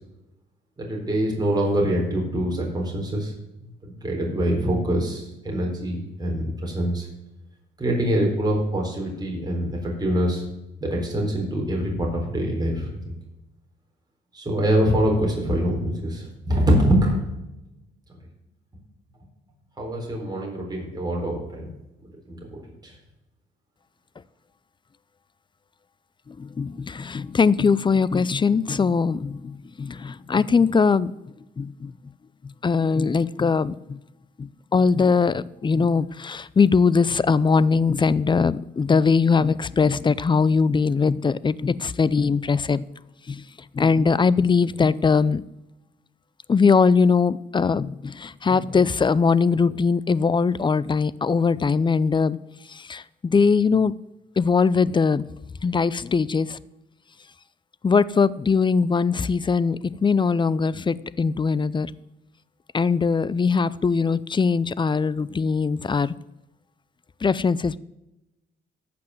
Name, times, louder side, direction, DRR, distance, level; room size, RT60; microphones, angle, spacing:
voice 1, 0.8-3.3 3.8-7.1 7.8-10.4 10.8-13.2 14.3-17.2 19.8-21.7 22.3-22.9, equal, 20° right, 4.0 m, -24 dB
voice 2, 26.3-31.1 31.6-31.9 32.6-34.0 34.4-42.9 43.3-43.4 43.7-45.4 46.5-52.4 52.7-53.9 54.4-55.3 55.6-56.6 57.8-61.9 62.7-66.1 67.2-67.8, left 5 dB, 25° left, 0.5 m, -21 dB
14.0 x 6.1 x 7.7 m
cardioid pair, 90°, 20 cm